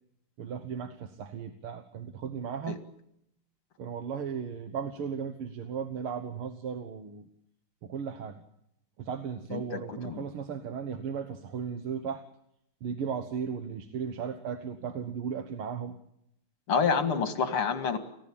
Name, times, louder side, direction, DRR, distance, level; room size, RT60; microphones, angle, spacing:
voice 1, 0.4-2.8 3.8-7.3 7.8-8.4 9.0-12.2 12.8-16.0, right 7 dB, 90° right, 7 dB, 2.2 m, -36 dB
voice 2, 9.5-10.2 16.7-18.0, left 6 dB, 85° left, 7 dB, 3.1 m, -28 dB
29.5 x 16.0 x 8.6 m, 0.80 s
omnidirectional pair, 2.3 m